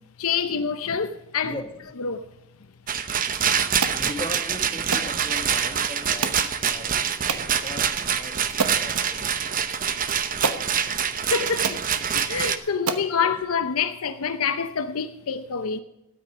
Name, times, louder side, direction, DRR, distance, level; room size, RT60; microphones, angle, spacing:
voice 1, 0.2-1.5 2.0-2.2 11.3-11.8 12.1-15.8, left 6 dB, 70° left, 0.7 m, -26 dB
Rattle, 2.9-12.6, right 8 dB, 35° right, 0.8 m, -25 dB
sound 1, 3.8-4.0 4.9-5.1 6.2-6.5 7.3-7.5 8.1-8.2 8.6-8.8 9.9-10.0 10.4-10.7 11.3-11.4 11.6-11.8 12.4-12.5 12.9-13.1, right 5 dB, 80° right, 1.1 m, -27 dB
voice 2, 3.9-7.0 7.3-9.7 11.4-11.5 13.2-13.4, left 1 dB, 25° left, 1.5 m, -39 dB
13.0 x 9.6 x 6.1 m
head